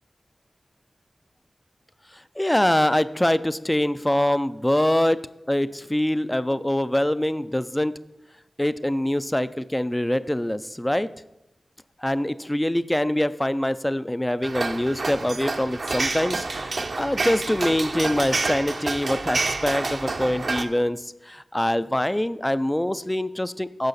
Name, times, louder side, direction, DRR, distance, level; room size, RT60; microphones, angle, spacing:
voice 1, 2.1-5.2 5.5-7.9 8.6-11.1 12.0-23.9, left 1 dB, 15° left, 14 dB, 0.3 m, -24 dB
sound 1, 14.4-20.6, right 3 dB, 65° right, 0.7 m, -28 dB
14.5 x 4.9 x 4.1 m, 0.94 s
cardioid pair, 50°, 0 cm